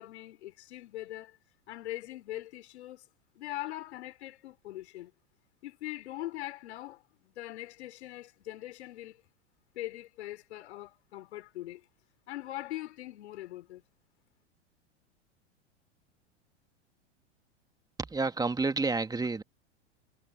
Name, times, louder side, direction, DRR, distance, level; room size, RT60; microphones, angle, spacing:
voice 1, 0.0-1.4 1.7-3.1 3.3-5.1 5.6-9.2 9.7-11.8 12.3-13.8, left 15 dB, 65° left, 3.4 m, -42 dB
voice 2, 18.0-19.4, right 3 dB, 10° right, 1.9 m, -29 dB
hypercardioid pair, 95°, 35 cm